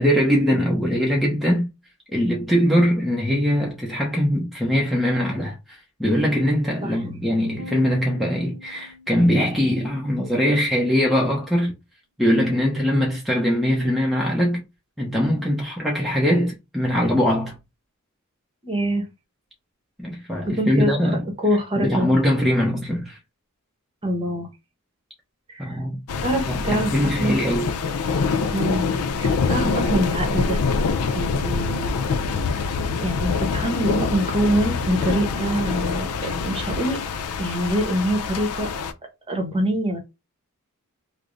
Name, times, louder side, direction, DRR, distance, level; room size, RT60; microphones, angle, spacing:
voice 1, 0.0-1.7 2.1-11.7 12.2-14.6 15.0-17.6 20.0-21.3 21.8-23.2 25.6-26.0 26.4-27.7, equal, ahead, 0.6 m, -21 dB
sound 1, 7.6-10.0, left 1 dB, 70° right, 0.6 m, -43 dB
voice 2, 18.6-19.0 20.5-20.9 21.4-22.2 24.0-24.5 25.5-25.8 26.2-26.9 27.2-27.4 28.5-28.9 29.2-30.6 31.1-31.9 33.0-37.0 37.4-38.7 39.3-40.0, right 1 dB, 25° right, 0.9 m, -24 dB
sound 2, 26.1-38.9, left 4 dB, 90° left, 0.4 m, -25 dB
3.3 x 2.0 x 3.7 m
head